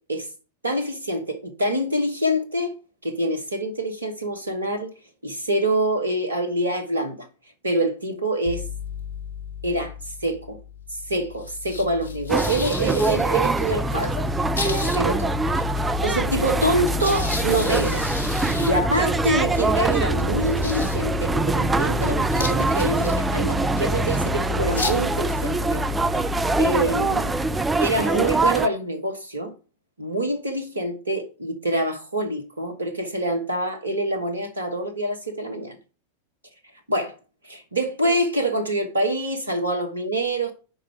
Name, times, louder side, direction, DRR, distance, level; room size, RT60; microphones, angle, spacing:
voice 1, 0.6-2.7 3.0-4.9 5.2-7.3 7.6-8.6 9.6-9.9 10.2-10.6 11.1-14.3 14.6-15.3 16.0-18.1 18.3-25.8 26.6-27.3 27.8-29.5 30.0-35.8 36.9-37.1 37.4-40.5, right 1 dB, 80° right, 1.1 m, -25 dB
sound 1, 8.5-28.4, left 8 dB, 70° left, 0.9 m, -31 dB
sound 2, 12.3-28.7, right 3 dB, 10° right, 0.4 m, -24 dB
5.3 x 4.9 x 5.9 m
figure-of-eight pair, 90°, 0 cm